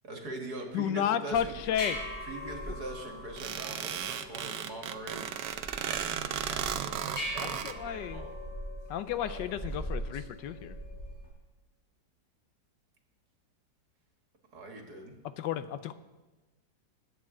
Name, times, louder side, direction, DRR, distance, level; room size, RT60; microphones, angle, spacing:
voice 1, 0.0-5.3 5.8-6.0 6.4-8.3 9.1-10.3 14.5-15.2, right 2 dB, 60° right, 2 dB, 2.2 m, -43 dB
voice 2, 0.7-2.0 7.4-8.3 8.9-10.8 15.4-15.9, left 9 dB, 90° left, 12 dB, 1.3 m, -32 dB
sound 1, 1.3-11.3, equal, 50° left, 4.8 m, -41 dB
sound 2, 3.4-7.7, right 9 dB, 85° right, 1.4 m, -35 dB
21.0 x 8.7 x 3.8 m, 1.1 s
omnidirectional pair, 1.9 m